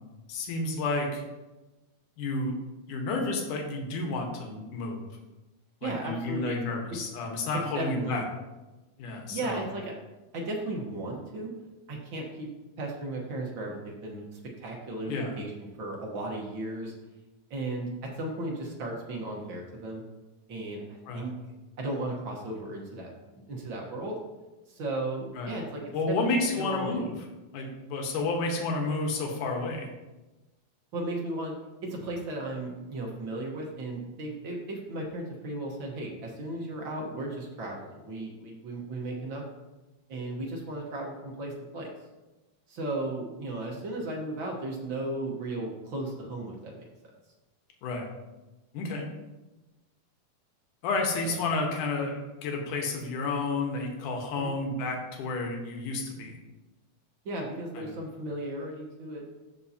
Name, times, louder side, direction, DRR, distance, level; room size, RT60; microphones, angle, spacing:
voice 1, 0.3-1.2 2.2-2.5 2.9-5.0 5.8-8.2 9.0-9.6 15.1-15.3 21.1-21.3 25.4-25.5 25.9-27.1 27.5-29.9 47.8-48.1 48.7-49.0 50.8-56.4 57.8-57.9, left 3 dB, 80° left, 1 dB, 2.7 m, -31 dB
voice 2, 5.8-6.6 7.7-8.2 9.1-9.9 10.3-11.5 11.9-12.5 12.8-15.5 15.8-16.9 17.5-17.9 18.1-20.0 20.5-20.8 21.1-21.3 21.8-23.1 23.5-24.2 24.7-25.8 26.1-27.1 30.9-31.5 31.8-39.5 40.1-41.9 42.7-46.9 51.2-51.4 54.3-54.5 57.2-59.2, right 2 dB, 55° right, -1 dB, 1.5 m, -35 dB
14.5 x 5.5 x 2.8 m, 1.1 s
omnidirectional pair, 3.6 m